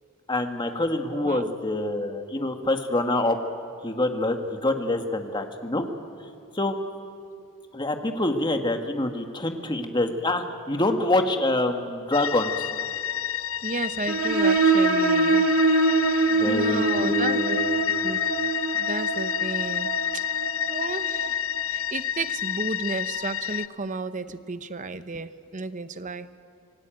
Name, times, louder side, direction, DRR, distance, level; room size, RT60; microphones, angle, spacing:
voice 1, 0.3-3.4 3.8-5.9 6.5-6.8 7.7-12.5 16.3-17.7, left 2 dB, 20° left, 5 dB, 1.7 m, -26 dB
voice 2, 1.1-1.5 13.6-15.5 16.1-17.6 18.0-18.2 18.7-20.3 20.7-21.4 21.7-26.3, right 3 dB, 35° right, 12 dB, 0.8 m, -33 dB
sound 1, 12.1-23.7, left 10 dB, 65° left, 0.6 m, -29 dB
sound 2, 14.1-21.4, right 3 dB, 85° right, 2.4 m, -24 dB
27.0 x 19.0 x 9.1 m, 2.4 s
head